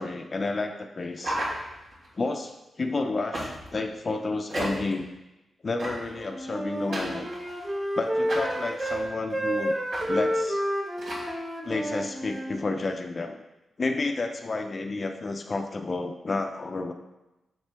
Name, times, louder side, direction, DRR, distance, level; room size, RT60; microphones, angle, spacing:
voice 1, 0.0-1.4 2.2-5.1 5.6-7.3 8.0-9.8 10.1-10.6 11.6-13.4 13.8-16.9, left 3 dB, 35° left, 5 dB, 0.4 m, -31 dB
sound 1, 1.2-2.1 3.3-3.8 4.5-5.0 5.8-6.2 6.9-7.7 8.3-9.0 9.9-10.1 10.3-10.5 11.0-11.3, right 1 dB, 75° right, 2.7 m, -33 dB
Wind instrument woodwind instrument, 6.2-9.0 9.3-12.6, equal, 15° right, 0.7 m, -30 dB
7.2 x 6.6 x 3.4 m, 0.99 s
wide cardioid pair, 140°, 0 cm